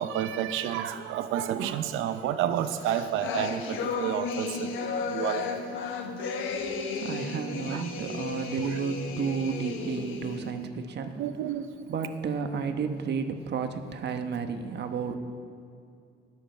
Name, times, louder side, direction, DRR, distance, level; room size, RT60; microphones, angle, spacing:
voice 1, 0.0-4.7 5.1-5.7 7.7-8.2 8.6-8.8 11.2-11.7, right 10 dB, 90° right, 10 dB, 0.7 m, -30 dB
sound 1, 2.6-10.5, left 4 dB, 85° left, 1.2 m, -34 dB
voice 2, 6.9-11.2 11.9-15.2, right 6 dB, 60° right, 7 dB, 1.1 m, -32 dB
20.0 x 7.5 x 4.5 m, 2.4 s
cardioid pair, 90°, 20 cm